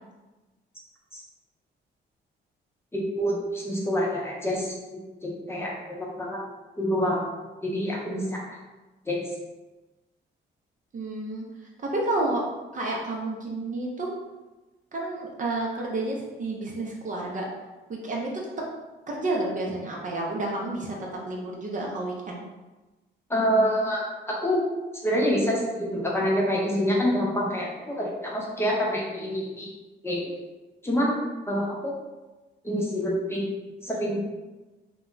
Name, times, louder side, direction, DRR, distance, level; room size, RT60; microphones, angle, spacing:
voice 1, 2.9-4.7 5.2-6.4 6.8-7.2 7.6-8.5 9.1-9.2 23.3-24.6 25.0-29.7 30.0-30.2 30.8-31.2 31.5-31.9 32.6-33.4 33.8-34.2, equal, 10° left, -4 dB, 0.7 m, -26 dB
voice 2, 10.9-11.4 11.8-12.4 12.7-14.1 14.9-17.5 17.9-18.3 19.1-22.4, right 2 dB, 40° right, -2 dB, 0.6 m, -30 dB
2.3 x 2.1 x 3.8 m, 1.1 s
cardioid pair, 90°, 20 cm